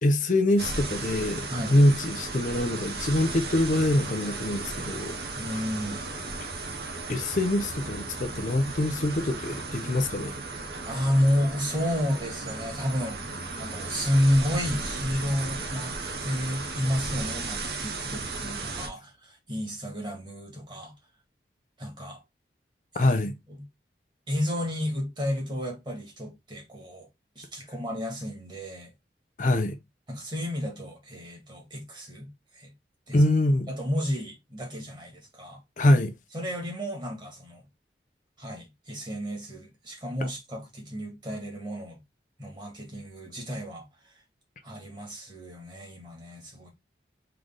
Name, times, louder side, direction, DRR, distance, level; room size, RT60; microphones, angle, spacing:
voice 1, 0.0-5.2 5.5-5.6 7.1-10.4 22.9-23.3 29.4-29.8 33.1-33.7 35.8-36.1, left 1 dB, 45° left, 0.6 m, -24 dB
sound 1, 0.6-18.9, right 3 dB, 65° right, 1.0 m, -35 dB
voice 2, 5.4-6.0 10.6-20.9 21.8-22.2 23.0-23.1 23.5-23.6 24.3-27.1 27.4-28.9 30.1-32.7 33.1-33.2 33.7-35.6 36.3-37.6 38.4-42.0 42.4-44.2 44.6-46.7, left 1 dB, 25° right, 1.8 m, -31 dB
3.9 x 3.3 x 3.6 m
head